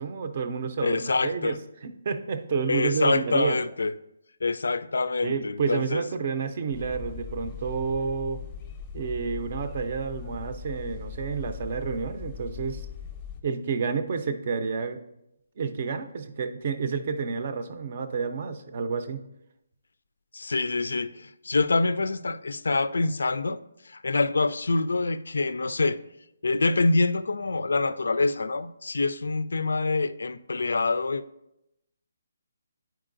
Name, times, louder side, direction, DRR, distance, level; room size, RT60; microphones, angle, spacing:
voice 1, 0.0-3.6 5.2-8.4 8.9-12.9 13.4-15.0 15.6-19.2, right 5 dB, 40° right, 0.5 m, -30 dB
voice 2, 0.8-1.6 2.7-3.9 4.4-6.0 20.3-23.6 23.9-26.0 26.4-31.2, left 3 dB, 80° left, 0.3 m, -26 dB
sound 1, 6.7-13.4, left 7 dB, 20° left, 0.6 m, -40 dB
8.8 x 4.6 x 2.5 m
hypercardioid pair, 160°, 0 cm